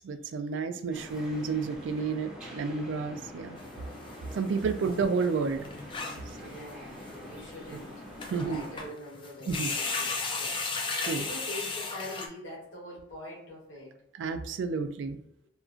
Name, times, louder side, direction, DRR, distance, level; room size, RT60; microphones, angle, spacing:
voice 1, 0.0-3.6 4.3-5.6 6.4-6.5 8.3-8.6 9.5-9.7 11.0-11.2 14.2-15.2, right 4 dB, 75° right, 8 dB, 0.3 m, -31 dB
sound 1, 0.9-8.9, left 1 dB, 5° right, 0.9 m, -45 dB
sound 2, 3.6-4.3 4.6-4.7 4.9-5.0 5.2-5.3 5.6-6.3 7.0-7.1 7.7-7.8 8.2-8.9 9.1-12.3, left 4 dB, 25° left, 0.3 m, -34 dB
voice 2, 6.1-14.0, left 1 dB, 90° left, -3 dB, 1.3 m, -44 dB
2.8 x 2.4 x 2.4 m, 0.78 s
head